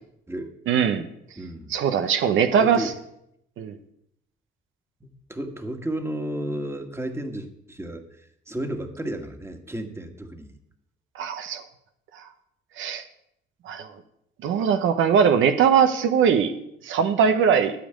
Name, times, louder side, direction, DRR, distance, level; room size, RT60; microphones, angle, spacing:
voice 1, 0.7-1.0 1.7-2.9 3.6-3.8 11.1-11.6 12.8-13.0 13.6-13.9 14.4-16.5 16.8-17.7, right 7 dB, 80° right, 8 dB, 0.9 m, -20 dB
voice 2, 1.4-1.7 2.6-2.9 5.0-10.5, right 1 dB, 15° right, 5 dB, 1.7 m, -33 dB
13.0 x 5.2 x 9.0 m, 0.78 s
cardioid pair, 90°, 20 cm